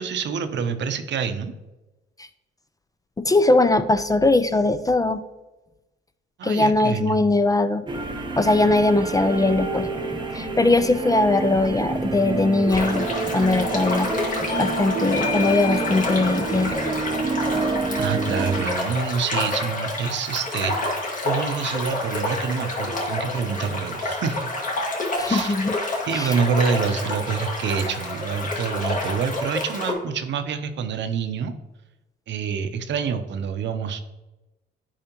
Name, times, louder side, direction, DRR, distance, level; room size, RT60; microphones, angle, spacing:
voice 1, 0.0-1.5 6.4-7.2 18.0-24.4 25.2-25.6 26.1-31.5 32.3-34.0, right 6 dB, 65° right, 9 dB, 0.7 m, -27 dB
voice 2, 3.2-5.2 6.4-7.8 8.4-9.9 10.3-14.1 14.6-16.8 25.2-25.8 26.1-26.4, left 2 dB, 20° left, 11 dB, 0.4 m, -20 dB
sound 1, 7.9-18.7, right 3 dB, 25° right, 0.8 m, -28 dB
sound 2, 12.7-29.9, left 2 dB, 40° left, 1.9 m, -29 dB
Bell / Doorbell, 14.5-19.6, left 6 dB, 90° left, 1.3 m, -35 dB
8.8 x 4.9 x 3.0 m, 1.0 s
cardioid pair, 90°, 20 cm